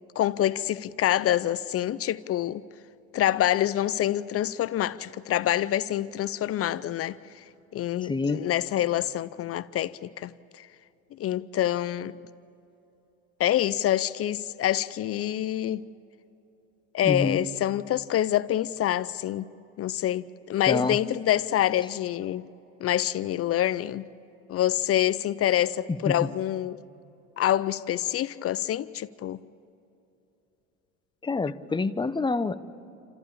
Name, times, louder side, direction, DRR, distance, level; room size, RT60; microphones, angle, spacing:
voice 1, 0.2-2.6 3.1-7.2 7.7-10.3 10.6-10.7 11.2-12.1 13.4-15.9 16.9-19.5 19.8-22.5 22.8-24.1 24.5-26.8 27.4-29.4, left 12 dB, 35° left, 0.6 m, -26 dB
voice 2, 8.0-8.4 17.0-17.4 20.7-21.0 26.1-26.3 31.2-32.5, left 3 dB, 10° left, 0.9 m, -27 dB
28.5 x 15.0 x 8.6 m
hypercardioid pair, 85°, 41 cm